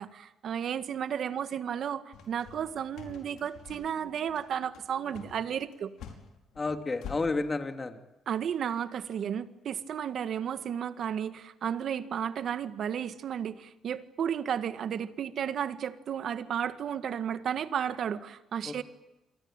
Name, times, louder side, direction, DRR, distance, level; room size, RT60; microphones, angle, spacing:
voice 1, 0.0-5.9 8.2-18.8, right 8 dB, 65° right, 11 dB, 1.8 m, -33 dB
sound 1, 2.1-7.2, left 8 dB, 80° left, 5.3 m, -47 dB
voice 2, 6.6-8.0 18.6-18.8, left 3 dB, 25° left, 6 dB, 3.0 m, -31 dB
28.5 x 23.0 x 9.0 m, 0.95 s
cardioid pair, 90°, 0 cm